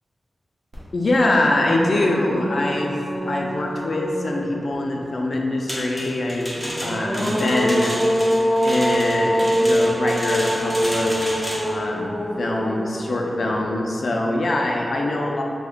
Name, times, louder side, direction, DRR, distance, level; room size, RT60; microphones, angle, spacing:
sound 1, 0.7-0.8 1.2-4.9 6.5-13.8, equal, 60° right, 0.9 m, -25 dB
voice 1, 0.9-8.0 8.6-15.4, left 2 dB, 55° left, 0 dB, 0.3 m, -23 dB
sound 2, 5.7-11.8, equal, ahead, 0.6 m, -31 dB
3.3 x 2.1 x 3.5 m, 2.6 s
wide cardioid pair, 130°, 0 cm